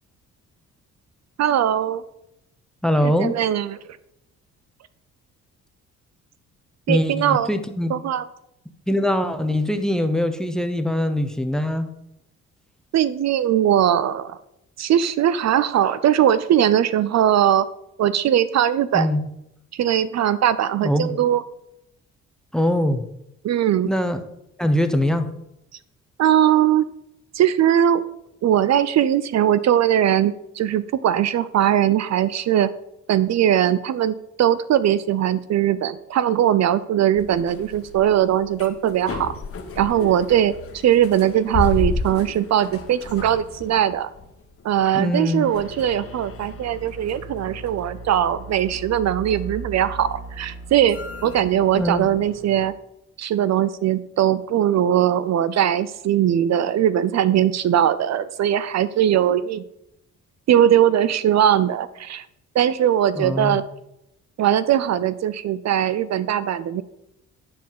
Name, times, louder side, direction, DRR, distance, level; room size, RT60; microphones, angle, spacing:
voice 1, 1.4-2.0 3.0-3.8 6.9-7.5 7.9-8.3 12.9-14.4 14.8-17.7 18.0-19.1 19.7-21.4 23.4-23.9 26.2-26.8 27.3-28.0 28.4-32.7 33.1-39.3 39.8-40.5 40.8-44.1 44.6-52.7 53.2-59.6 60.5-62.2 62.5-63.6 64.4-66.8, right 10 dB, 60° right, 15 dB, 0.6 m, -20 dB
voice 2, 2.8-3.4 6.9-8.0 8.9-11.9 18.9-19.2 20.8-21.1 22.5-23.0 23.9-24.2 24.6-25.3 44.9-45.5 51.7-52.1 63.2-63.6, left 1 dB, ahead, 8 dB, 1.1 m, -22 dB
sound 1, 37.2-52.6, left 2 dB, 50° left, 1.6 m, -34 dB
10.5 x 4.4 x 7.5 m, 0.83 s
cardioid pair, 90°, 30 cm